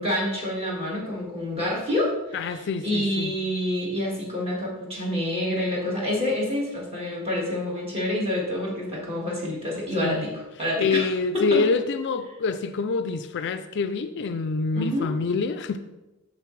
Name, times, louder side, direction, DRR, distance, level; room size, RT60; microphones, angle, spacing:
voice 1, 0.0-11.7 14.7-15.1, left 1 dB, 25° right, -3 dB, 1.9 m, -27 dB
voice 2, 2.3-3.3 10.0-10.3 10.8-15.8, left 4 dB, 50° left, 9 dB, 0.4 m, -26 dB
6.8 x 6.6 x 3.2 m, 1.0 s
head